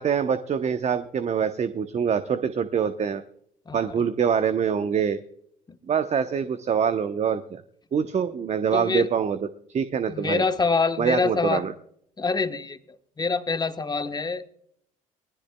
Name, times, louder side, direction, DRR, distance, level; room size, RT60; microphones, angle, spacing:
voice 1, 0.0-3.2 3.7-5.2 5.9-7.6 7.9-9.4 9.7-10.4 11.0-11.7, right 7 dB, 40° right, 10 dB, 0.9 m, -25 dB
voice 2, 3.7-4.0 5.7-5.8 8.7-9.1 10.1-11.6 12.2-12.8 13.2-14.4, left 4 dB, 25° left, 9 dB, 1.2 m, -25 dB
19.5 x 14.5 x 2.3 m, 0.66 s
hypercardioid pair, 55°, 18 cm